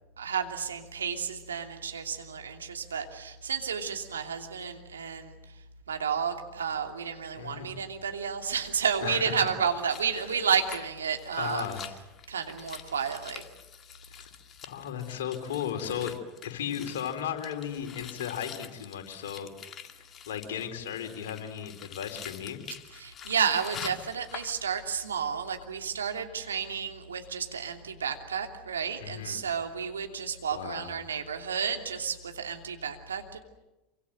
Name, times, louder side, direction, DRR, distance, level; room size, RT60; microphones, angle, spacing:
voice 1, 0.2-5.5 5.9-11.7 12.3-13.5 22.9-33.4, right 7 dB, 80° right, 4 dB, 2.9 m, -31 dB
voice 2, 7.3-7.8 9.0-9.5 10.2-10.3 11.4-11.9 14.1-14.3 14.6-16.2 16.4-19.5 19.9-22.6 29.0-29.4 30.5-30.9, left 9 dB, 70° left, 4 dB, 4.2 m, -35 dB
sound 1, 9.5-25.0 25.3-25.6, left 8 dB, 35° left, 2.1 m, -47 dB
27.5 x 24.5 x 7.8 m, 1.0 s
hypercardioid pair, 85°, 0 cm